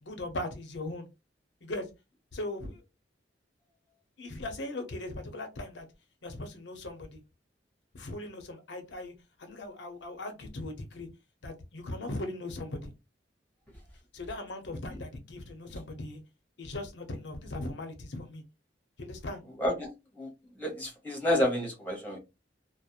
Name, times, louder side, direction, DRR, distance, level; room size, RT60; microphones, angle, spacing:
voice 1, 0.0-1.1 1.6-1.9 2.3-2.8 4.2-5.9 6.2-7.2 7.9-9.1 9.4-11.1 11.4-12.9 14.1-16.2 16.6-18.4 19.0-19.4, left 1 dB, 80° left, 0.7 m, -39 dB
voice 2, 19.6-19.9 20.1-20.3 20.5-22.2, left 1 dB, 10° left, 1.0 m, -29 dB
2.4 x 2.1 x 2.7 m
head